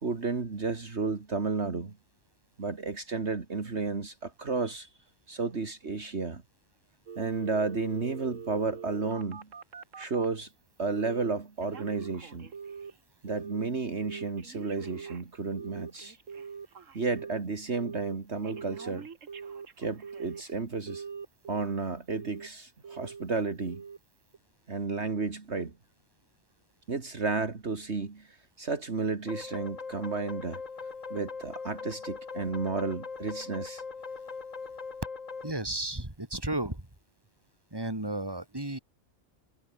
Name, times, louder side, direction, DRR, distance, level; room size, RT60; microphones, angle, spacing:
voice 1, 0.0-2.0 2.6-4.9 5.3-6.4 7.2-9.5 10.0-10.5 10.8-12.5 13.2-16.2 16.9-19.1 19.8-21.0 21.5-23.8 24.7-25.8 26.9-30.6 31.1-33.8, right 4 dB, 60° right, 2.4 m, -32 dB
Telephone, 7.1-10.3 10.9-11.3 11.6-13.0 13.3-13.7 14.0-17.4 17.8-18.2 18.4-20.5 20.9-21.7 22.1-22.5 22.8-23.2 23.6-24.0 24.3-24.4, right 6 dB, 80° right, 2.0 m, -43 dB
sound 1, 29.3-35.5, left 4 dB, 85° left, 2.6 m, -40 dB
voice 2, 35.4-36.9 37.7-38.8, right 1 dB, 20° right, 3.4 m, -33 dB
omnidirectional pair, 1.3 m